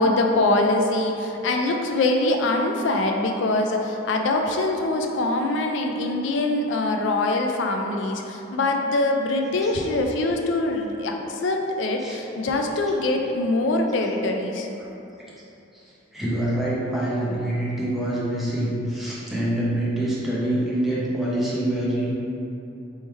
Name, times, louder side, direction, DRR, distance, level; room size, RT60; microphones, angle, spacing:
voice 1, 0.0-14.7, left 2 dB, 70° left, 3 dB, 0.4 m, -23 dB
voice 2, 16.1-22.1, right 1 dB, ahead, -8 dB, 0.7 m, -25 dB
3.5 x 3.1 x 4.3 m, 2.9 s
head